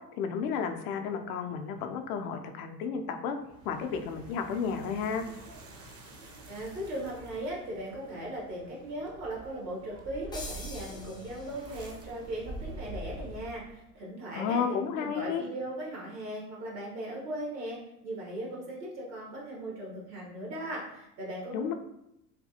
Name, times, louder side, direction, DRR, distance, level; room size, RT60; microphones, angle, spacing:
voice 1, 0.2-3.4 3.7-5.2 14.3-15.4 21.5-21.7, left 6 dB, 60° left, 6 dB, 0.5 m, -32 dB
sound 1, 3.4-13.8, right 1 dB, 30° right, 0.7 m, -46 dB
voice 2, 6.5-21.7, right 1 dB, 70° right, -3 dB, 1.3 m, -38 dB
sound 2, 10.3-11.9, left 2 dB, 10° left, 0.4 m, -45 dB
3.3 x 2.3 x 2.7 m, 0.82 s
figure-of-eight pair, 70°, 49 cm